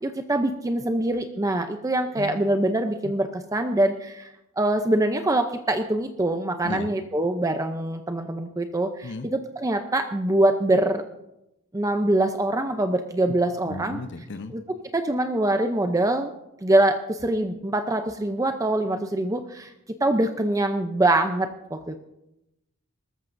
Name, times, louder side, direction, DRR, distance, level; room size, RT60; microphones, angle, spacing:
voice 1, 0.0-11.0 11.7-14.0 14.5-16.3 16.6-19.7 20.0-22.0, right 1 dB, 15° right, 6 dB, 0.6 m, -24 dB
voice 2, 13.7-14.5, left 2 dB, 55° left, 9 dB, 0.7 m, -35 dB
21.0 x 13.5 x 2.6 m, 0.88 s
head